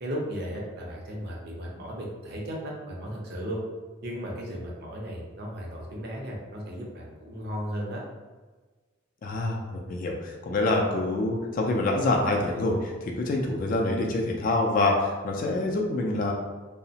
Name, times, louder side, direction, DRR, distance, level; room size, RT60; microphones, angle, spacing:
voice 1, 0.0-3.6 4.0-8.0, equal, 50° right, -2 dB, 0.6 m, -35 dB
voice 2, 9.2-16.3, left 2 dB, 40° left, 0 dB, 0.3 m, -26 dB
2.8 x 2.0 x 2.7 m, 1.3 s
head